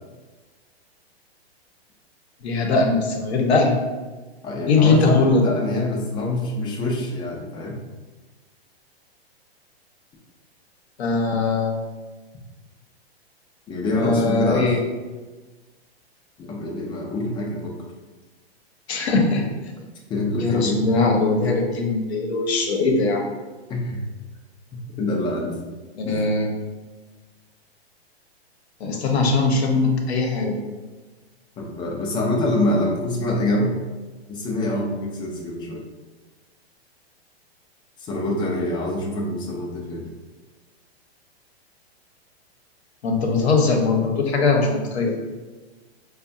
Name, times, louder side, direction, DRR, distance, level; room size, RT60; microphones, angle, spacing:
voice 1, 2.4-3.8 4.7-5.4 11.0-11.8 13.9-14.8 18.9-19.5 20.4-23.3 26.0-26.5 28.8-30.6 43.0-45.1, left 3 dB, 75° left, 2 dB, 0.8 m, -20 dB
voice 2, 4.4-7.8 13.7-14.7 16.4-17.7 20.1-20.9 21.4-21.5 23.7-24.0 25.0-25.5 26.0-26.3 31.6-33.7 34.3-35.8 38.0-40.1, left 1 dB, 15° left, -1 dB, 0.4 m, -25 dB
4.6 x 2.3 x 2.6 m, 1.3 s
hypercardioid pair, 130°, 32 cm